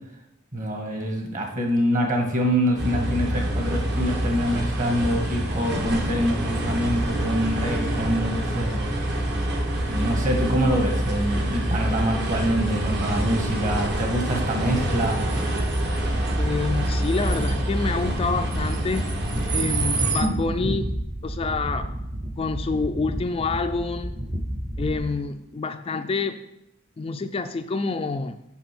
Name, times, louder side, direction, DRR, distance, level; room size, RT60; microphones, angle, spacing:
voice 1, 0.5-8.8 9.8-15.2, equal, 40° right, 2 dB, 1.8 m, -25 dB
sound 1, 2.8-20.2, right 1 dB, 55° right, 1.5 m, -26 dB
sound 2, 12.4-25.0, equal, 20° right, 0.7 m, -31 dB
voice 2, 16.4-19.1 19.5-20.9 21.2-21.9 22.4-24.2 24.8-26.4 27.0-28.4, left 4 dB, 30° left, 8 dB, 0.3 m, -27 dB
6.9 x 5.8 x 6.0 m, 0.86 s
head